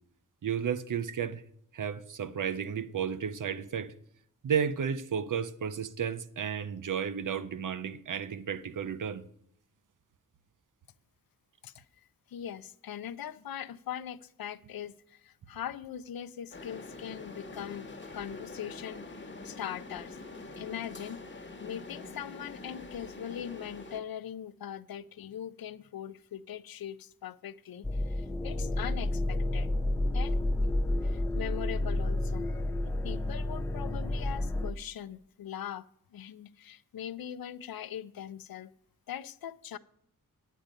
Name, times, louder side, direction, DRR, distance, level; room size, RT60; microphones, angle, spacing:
voice 1, 0.4-1.4 1.7-3.9 4.4-9.2, right 7 dB, 60° right, 0.7 m, -33 dB
voice 2, 12.3-19.1 19.4-20.2 20.6-29.7 30.1-30.4 31.0-35.9 36.1-38.7 39.1-39.8, left 9 dB, 85° left, 0.5 m, -41 dB
sound 1, 16.5-24.0, left 3 dB, 30° left, 1.2 m, -45 dB
sound 2, 27.8-34.7, left 1 dB, 10° left, 0.5 m, -30 dB
10.0 x 8.9 x 5.2 m
wide cardioid pair, 135°, 35 cm